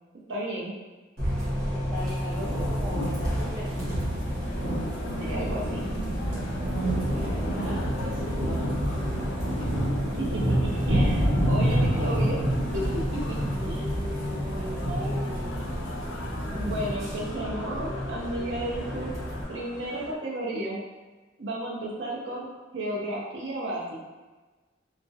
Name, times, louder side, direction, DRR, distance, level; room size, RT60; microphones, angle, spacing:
voice 1, 0.3-0.7 5.2-5.9 10.2-12.4 12.7-13.4 13.6-15.5 16.5-19.1 19.5-20.8 21.4-22.4 22.7-24.0, right 1 dB, 70° right, -5 dB, 0.6 m, -33 dB
Bus, 1.2-19.4, equal, 55° right, 0.9 m, -32 dB
voice 2, 1.7-3.8 6.7-8.7 14.5-15.2, left 1 dB, 5° right, -9 dB, 0.3 m, -40 dB
sound 1, 2.0-16.9, right 1 dB, 30° right, 0.9 m, -29 dB
sound 2, 4.5-20.2, left 2 dB, 75° left, 0.3 m, -43 dB
2.3 x 2.0 x 2.7 m, 1.2 s
head